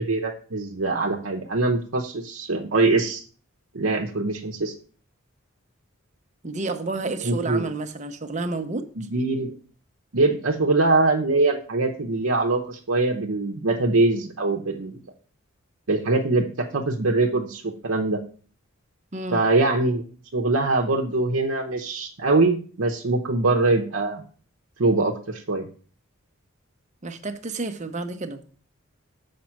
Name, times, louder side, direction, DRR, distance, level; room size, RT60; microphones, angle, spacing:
voice 1, 0.0-3.2 3.7-4.7 7.2-7.7 9.0-9.6 10.1-14.9 15.9-16.5 16.7-18.2 19.3-20.0 20.3-24.2 24.8-25.7, right 3 dB, 70° right, 1 dB, 0.8 m, -23 dB
voice 2, 6.4-9.1 19.1-19.4 27.0-28.4, right 3 dB, 35° right, 7 dB, 0.8 m, -30 dB
7.6 x 5.2 x 5.8 m, 0.41 s
head